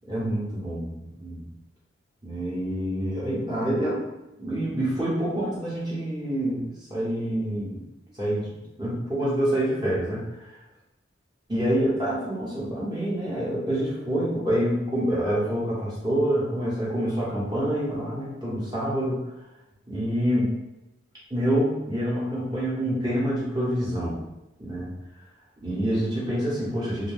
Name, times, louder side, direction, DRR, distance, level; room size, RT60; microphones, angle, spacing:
voice 1, 0.1-1.4 2.2-4.0 4.4-7.8 8.2-10.4 11.5-19.2 19.9-20.5 21.3-24.2 24.6-24.9 25.6-27.1, right 1 dB, 20° right, -8 dB, 0.9 m, -27 dB
2.6 x 2.2 x 3.4 m, 0.99 s
head